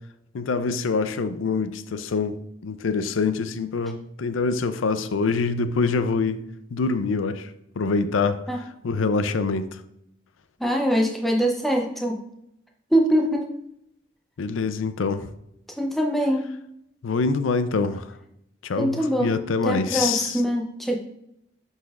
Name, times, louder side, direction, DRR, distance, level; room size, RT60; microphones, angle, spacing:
voice 1, 0.3-2.4 2.6-6.4 6.7-7.5 7.8-8.4 8.8-9.8 14.4-15.3 17.0-18.2 18.6-20.4, left 4 dB, 90° left, 0.5 m, -25 dB
voice 2, 10.6-12.2 12.9-13.5 15.8-16.4 18.8-19.3 19.6-21.0, equal, ahead, 0.6 m, -23 dB
10.0 x 4.1 x 2.4 m
head